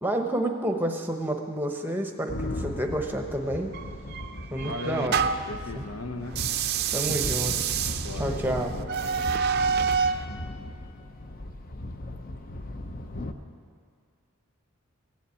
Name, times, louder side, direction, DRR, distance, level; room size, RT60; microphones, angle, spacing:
voice 1, 0.0-3.7 4.5-5.2 5.7-5.8 6.9-7.6 8.2-8.7, right 1 dB, 10° right, 4 dB, 0.9 m, -29 dB
sound 1, 2.3-13.3, left 1 dB, 40° left, 0.7 m, -37 dB
sound 2, 3.7-5.6 6.3-10.2, right 6 dB, 45° right, 0.5 m, -28 dB
voice 2, 4.6-6.4 8.0-9.4, left 2 dB, 75° left, 8 dB, 0.8 m, -38 dB
15.5 x 7.2 x 8.4 m, 2.1 s
head